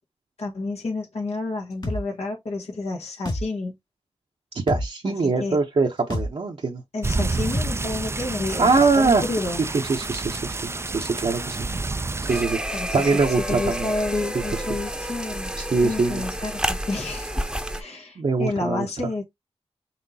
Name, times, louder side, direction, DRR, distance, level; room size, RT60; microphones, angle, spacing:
voice 1, 0.4-3.8 5.0-5.6 6.9-9.7 12.7-13.1 13.5-15.5 15.8-17.5 17.8-19.2, left 2 dB, 80° left, 1.5 m, -30 dB
sound 1, 1.8-2.0 3.3-3.5 4.7-4.9 6.1-6.3 7.5-7.7, left 1 dB, 45° left, 2.2 m, -27 dB
voice 2, 4.5-6.8 8.6-9.3 9.9-11.8 12.2-13.9 15.6-16.2 18.2-18.8, right 4 dB, 65° right, 0.9 m, -23 dB
sound 2, 7.0-12.4, right 3 dB, 25° right, 0.4 m, -29 dB
sound 3, 12.3-17.8, right 1 dB, 5° right, 0.8 m, -30 dB
5.8 x 3.3 x 2.8 m
cardioid pair, 55°, 11 cm